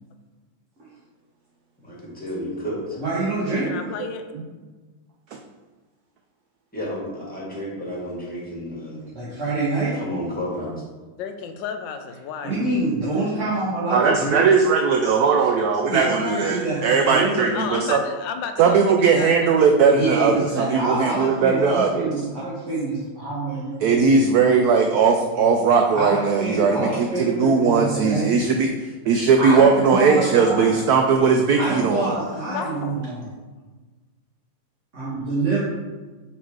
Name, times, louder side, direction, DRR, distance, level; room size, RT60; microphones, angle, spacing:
voice 1, 1.8-2.8 6.7-9.0 9.9-10.8, equal, 5° left, -6 dB, 1.9 m, -31 dB
voice 2, 2.9-3.8 9.1-10.0 12.4-14.4 15.9-17.5 19.9-24.0 25.9-28.3 29.4-30.7 31.5-33.2 34.9-35.6, right 2 dB, 40° right, -9 dB, 1.8 m, -26 dB
voice 3, 3.6-4.2 11.2-12.6 17.5-19.6 20.3-20.5 32.4-33.0, left 6 dB, 75° left, 7 dB, 1.3 m, -32 dB
voice 4, 13.9-18.0 18.6-22.1 23.8-32.1, right 5 dB, 75° right, 3 dB, 0.9 m, -19 dB
6.1 x 4.3 x 4.6 m, 1.3 s
omnidirectional pair, 2.1 m